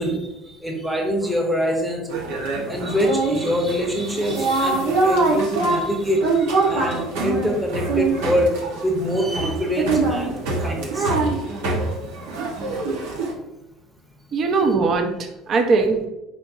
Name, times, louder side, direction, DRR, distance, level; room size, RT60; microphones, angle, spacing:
voice 1, 0.0-2.1 2.7-11.2, equal, 10° right, -1 dB, 1.1 m, -25 dB
sound 1, 2.1-13.3, right 3 dB, 85° right, 1.0 m, -24 dB
voice 2, 14.3-16.1, right 4 dB, 50° right, 5 dB, 0.7 m, -20 dB
4.5 x 4.4 x 2.6 m, 0.92 s
supercardioid pair, 95°, 0 cm